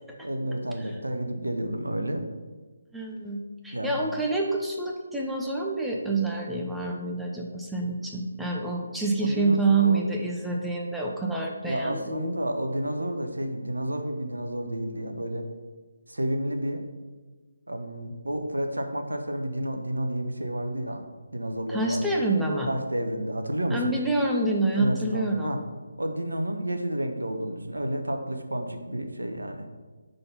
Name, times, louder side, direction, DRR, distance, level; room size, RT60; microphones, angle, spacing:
voice 1, 0.2-2.2 3.7-4.0 9.2-10.1 10.4-10.6 11.7-15.5 16.1-16.9 17.7-21.0 21.3-22.0 22.7-23.9 24.8-25.6 26.0-29.7, right 1 dB, 85° right, 5 dB, 0.8 m, -30 dB
voice 2, 2.9-12.3 21.7-22.7 23.7-25.6, right 2 dB, ahead, -2 dB, 0.6 m, -27 dB
5.8 x 3.9 x 5.2 m, 1.3 s
figure-of-eight pair, 150°, 0 cm